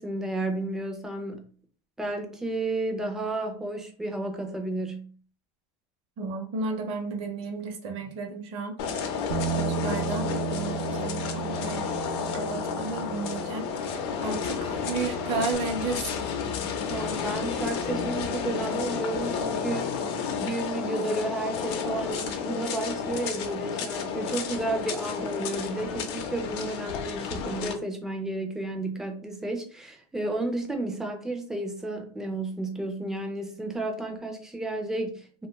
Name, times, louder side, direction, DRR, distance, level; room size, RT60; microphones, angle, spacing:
voice 1, 0.0-1.5 2.0-5.1 16.9-35.5, right 2 dB, 5° right, 3 dB, 0.3 m, -32 dB
voice 2, 6.2-9.0 9.6-11.8 12.3-16.1, right 4 dB, 40° right, 4 dB, 0.6 m, -33 dB
sound 1, 8.8-27.7, left 6 dB, 70° left, 0.5 m, -31 dB
Bass guitar, 9.3-15.5, right 10 dB, 90° right, 0.4 m, -35 dB
2.6 x 2.2 x 3.0 m, 0.42 s
supercardioid pair, 160°, 14 cm